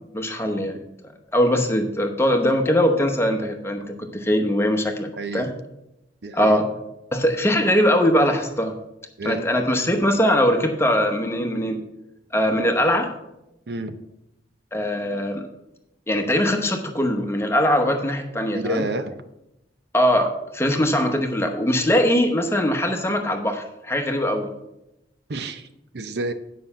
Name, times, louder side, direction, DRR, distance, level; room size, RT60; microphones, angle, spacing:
voice 1, 0.1-0.8 1.3-5.5 6.3-6.7 7.1-8.7 9.2-11.8 12.3-13.1 14.7-15.4 16.1-18.8 19.9-24.5, equal, 15° left, 4 dB, 0.9 m, -21 dB
voice 2, 5.2-5.5 6.2-6.6 9.2-9.4 13.7-14.0 18.5-19.2 25.3-25.7 25.9-26.3, right 2 dB, 60° right, 9 dB, 0.6 m, -29 dB
9.4 x 5.4 x 5.7 m, 0.89 s
head